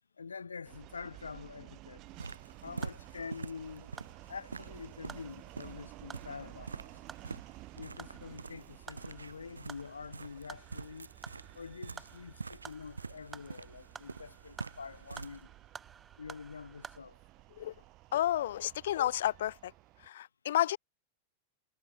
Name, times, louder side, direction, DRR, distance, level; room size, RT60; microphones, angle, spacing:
voice 1, 0.2-2.1 2.6-3.9 4.3-6.7 7.7-11.1 11.5-15.5 16.2-17.2, left 5 dB, 75° left, 3.7 m, -46 dB
sound 1, 0.6-20.1, right 18 dB, 40° right, 7.7 m, -54 dB
sound 2, 2.0-15.4, right 4 dB, 80° right, 5.0 m, -46 dB
sound 3, 2.8-17.0, right 6 dB, 20° right, 4.5 m, -53 dB
voice 2, 18.1-19.7 20.0-20.8, left 12 dB, 60° left, 0.7 m, -31 dB
figure-of-eight pair, 90°, 0 cm